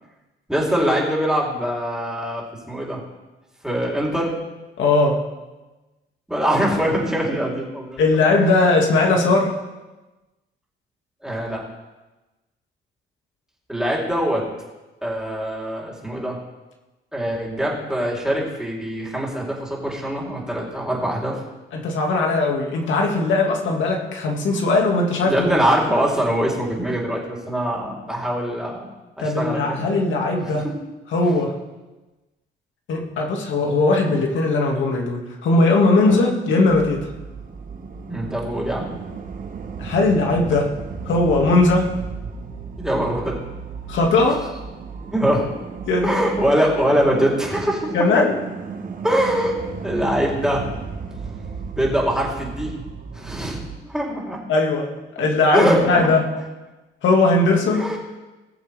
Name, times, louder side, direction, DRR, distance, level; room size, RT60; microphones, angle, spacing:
voice 1, 0.5-2.4 2.7-3.0 3.6-4.3 6.3-8.0 11.2-11.6 13.7-14.4 15.0-16.4 17.1-21.4 25.2-28.9 29.2-29.8 30.4-30.7 36.0-36.2 38.1-38.9 42.8-43.4 45.1-45.5 46.0-48.2 49.0-49.6 49.8-50.6 51.7-52.7 53.1-54.4 55.5-56.1 57.7-58.0, equal, 5° right, -4 dB, 4.0 m, -23 dB
voice 2, 4.8-5.2 8.0-9.5 21.7-25.5 29.2-30.7 31.1-31.5 32.9-37.1 39.8-40.7 41.1-41.9 43.9-44.4 45.8-46.2 47.9-48.4 54.5-54.9 55.2-56.2 57.0-57.9, left 3 dB, 75° left, 0 dB, 2.4 m, -19 dB
sound 1, 36.7-53.8, right 5 dB, 45° right, 1.3 m, -35 dB
20.5 x 7.1 x 3.7 m, 1.1 s
cardioid pair, 90°, 20 cm